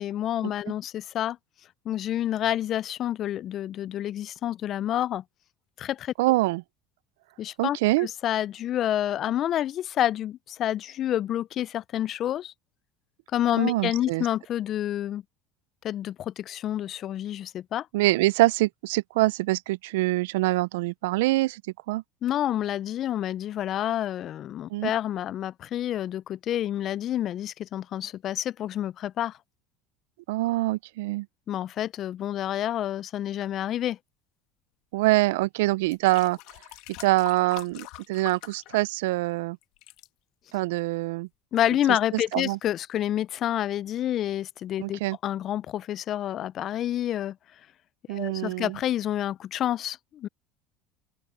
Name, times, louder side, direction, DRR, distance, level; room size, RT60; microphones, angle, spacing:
voice 1, 0.0-1.4 1.9-5.2 5.8-6.1 7.4-12.5 13.3-15.2 15.8-17.9 22.2-29.4 31.5-34.0 41.5-47.4 48.1-50.3, left 11 dB, 50° left, 0.4 m, -28 dB
voice 2, 6.2-6.6 7.6-8.1 13.6-14.3 17.9-21.6 21.9-22.0 24.7-24.9 30.3-31.3 34.9-36.4 37.0-39.6 40.5-41.3 41.9-42.6 44.8-45.2 48.1-48.8, right 20 dB, 85° right, 0.3 m, -25 dB
sound 1, 35.2-35.3 35.8-39.3 39.6-40.1 40.8-40.9, left 19 dB, 70° left, 1.4 m, -44 dB
open air
supercardioid pair, 95°, 0 cm